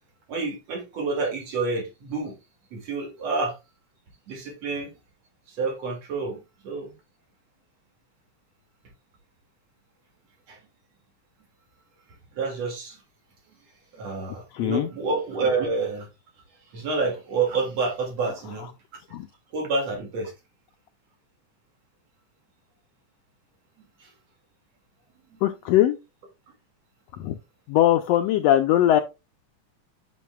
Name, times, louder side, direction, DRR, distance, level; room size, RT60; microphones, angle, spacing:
voice 1, 0.3-2.3 2.7-3.5 4.3-4.9 5.5-6.9 10.5-10.6 12.3-13.0 13.9-16.1 16.7-18.7 19.5-20.3 23.8-24.1 25.3-25.5, right 4 dB, 60° right, 3.2 m, -28 dB
voice 2, 14.5-14.9 19.1-19.3 25.4-26.0 27.2-27.3 27.7-29.0, left 12 dB, 85° left, 1.5 m, -20 dB
9.3 x 6.0 x 2.3 m
omnidirectional pair, 3.4 m